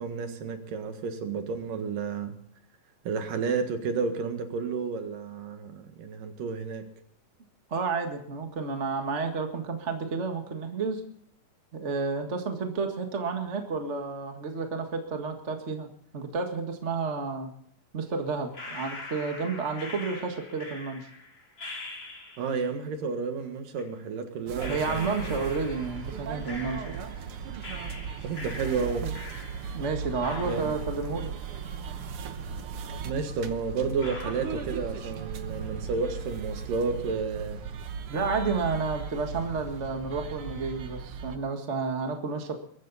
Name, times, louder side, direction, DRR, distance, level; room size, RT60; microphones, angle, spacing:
voice 1, 0.0-2.4 3.0-6.9 22.4-25.4 28.2-29.1 30.4-30.7 33.0-37.6, right 5 dB, 70° right, 6 dB, 3.2 m, -31 dB
voice 2, 7.7-11.0 11.7-15.9 16.1-17.5 17.9-21.1 24.7-27.0 29.7-31.3 38.1-42.6, right 4 dB, 35° right, 4 dB, 1.1 m, -31 dB
sound 1, 18.5-22.7 23.8-23.9 24.6-27.3 27.6-29.9 30.2-32.3 32.6-32.7 33.3-33.4 34.0-35.3 35.6-36.1, left 2 dB, 30° left, 4.8 m, -43 dB
sound 2, 24.5-41.4, right 6 dB, 85° right, 1.2 m, -37 dB
23.0 x 13.0 x 4.2 m, 0.66 s
omnidirectional pair, 4.1 m